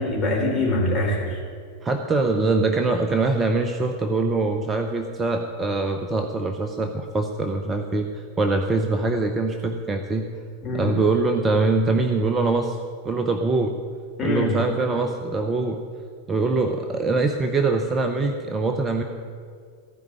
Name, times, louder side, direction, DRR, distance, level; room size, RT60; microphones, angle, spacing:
voice 1, 0.0-1.4 10.6-11.0 14.2-14.6, left 1 dB, 20° left, -4 dB, 3.8 m, -24 dB
voice 2, 1.8-10.3 10.7-12.8 13.0-13.8 14.2-15.8 16.3-19.0, right 3 dB, 20° right, 5 dB, 0.7 m, -23 dB
15.0 x 5.2 x 8.9 m, 2.1 s
figure-of-eight pair, 90°, 0 cm